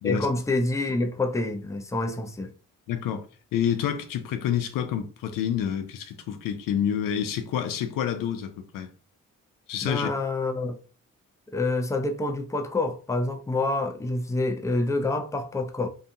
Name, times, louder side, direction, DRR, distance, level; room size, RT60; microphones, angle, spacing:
voice 1, 0.0-2.5 9.8-10.8 11.5-15.9, left 2 dB, 10° left, 0.5 m, -27 dB
voice 2, 2.9-3.3 3.5-8.9 9.7-10.1, left 9 dB, 75° left, 0.5 m, -28 dB
2.7 x 2.2 x 2.6 m
supercardioid pair, 50°, 33 cm